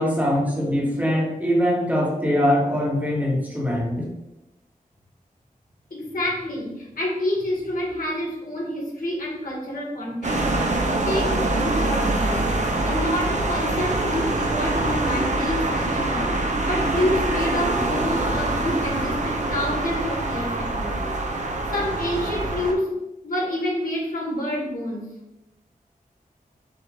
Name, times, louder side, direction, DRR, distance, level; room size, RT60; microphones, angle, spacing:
voice 1, 0.0-4.0, equal, 10° right, -3 dB, 1.2 m, -22 dB
voice 2, 5.9-10.5 11.0-12.5 12.8-16.3 16.6-21.4 21.7-22.9 23.2-25.1, left 1 dB, 75° left, -3 dB, 1.6 m, -28 dB
sound 1, 10.2-22.7, right 2 dB, 55° right, 0.7 m, -24 dB
6.0 x 2.5 x 3.4 m, 0.90 s
wide cardioid pair, 75°, 15 cm